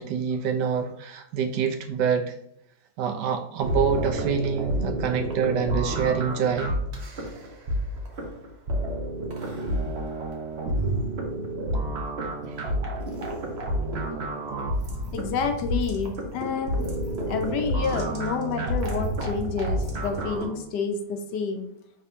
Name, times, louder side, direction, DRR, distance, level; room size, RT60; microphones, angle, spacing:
voice 1, 0.0-2.4 3.0-6.7 12.5-12.6, right 6 dB, 75° right, 5 dB, 1.2 m, -26 dB
sound 1, 3.6-20.5, right 1 dB, 50° right, 0.9 m, -29 dB
voice 2, 15.1-16.8 17.3-21.7, left 5 dB, 75° left, 5 dB, 1.2 m, -29 dB
5.1 x 3.3 x 2.7 m, 0.73 s
omnidirectional pair, 1.9 m